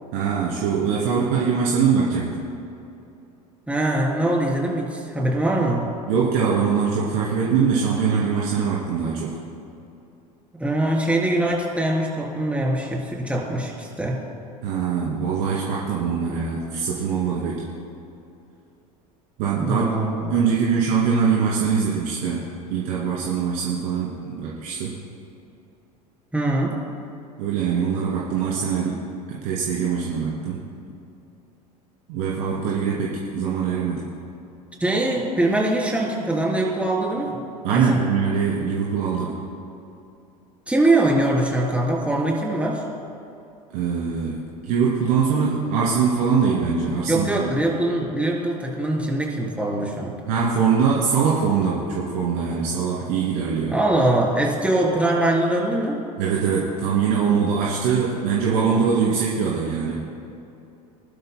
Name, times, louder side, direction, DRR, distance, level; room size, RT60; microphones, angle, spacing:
voice 1, 0.1-2.5 6.1-9.4 14.6-17.6 19.4-19.9 20.3-24.9 27.4-30.6 32.1-34.1 37.6-39.4 43.7-47.5 50.3-53.7 56.2-60.0, right 6 dB, 60° right, -6 dB, 2.6 m, -23 dB
voice 2, 3.7-5.9 10.6-14.2 19.6-20.4 26.3-26.8 34.8-37.4 37.7-38.0 40.7-42.8 47.1-50.1 53.7-56.0, right 1 dB, 5° right, -2 dB, 3.5 m, -22 dB
25.5 x 12.0 x 2.2 m, 2.8 s
hypercardioid pair, 80°, 21 cm